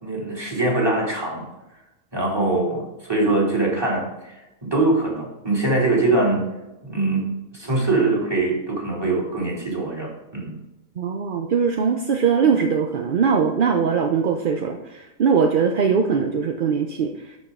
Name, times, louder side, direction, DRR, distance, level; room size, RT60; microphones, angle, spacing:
voice 1, 0.0-1.5 2.1-6.4 6.8-10.6, right 2 dB, 15° right, -3 dB, 2.6 m, -23 dB
voice 2, 11.0-17.4, right 6 dB, 50° right, 4 dB, 0.6 m, -21 dB
12.0 x 5.0 x 3.7 m, 1.0 s
omnidirectional pair, 1.4 m